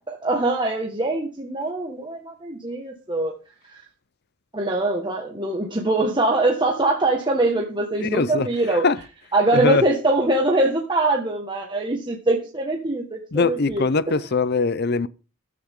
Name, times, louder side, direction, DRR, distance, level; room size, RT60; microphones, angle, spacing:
voice 1, 0.0-3.3 3.7-3.8 4.5-8.9 9.3-14.2, right 2 dB, 20° right, 1.7 m, -23 dB
voice 2, 8.0-8.5 8.8-9.0 9.5-9.8 13.3-15.1, left 4 dB, 45° left, 0.6 m, -21 dB
14.5 x 12.5 x 3.8 m
head